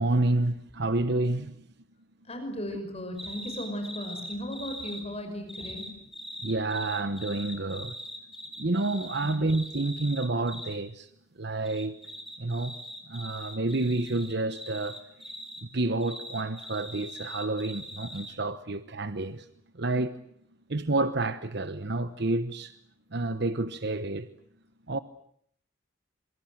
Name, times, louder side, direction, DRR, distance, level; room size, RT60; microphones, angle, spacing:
voice 1, 0.0-1.5 6.4-8.0 8.6-11.1 11.4-12.0 12.4-12.8 13.1-15.0 15.7-19.5 19.8-20.2 20.7-22.7 23.1-24.3 24.9-25.0, right 2 dB, 55° right, 1.1 m, -29 dB
voice 2, 2.3-5.9 9.2-9.5, left 1 dB, 30° left, 5.8 m, -36 dB
sound 1, 3.2-5.0 5.5-10.8 11.6-15.6 16.0-18.3, equal, ahead, 3.9 m, -42 dB
27.0 x 24.0 x 7.9 m
head